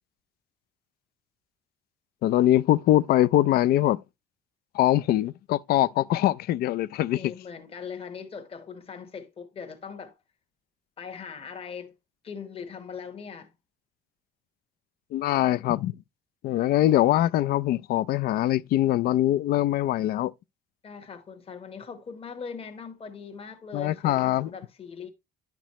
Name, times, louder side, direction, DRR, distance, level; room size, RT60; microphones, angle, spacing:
voice 1, 2.2-4.0 4.7-7.2 15.1-15.9 16.4-20.3 23.7-24.5, left 14 dB, 65° left, 0.4 m, -23 dB
voice 2, 7.1-10.2 11.0-11.9 12.2-13.5 20.8-25.1, left 6 dB, 35° left, 1.1 m, -40 dB
10.0 x 6.0 x 3.0 m
cardioid pair, 110°, 17 cm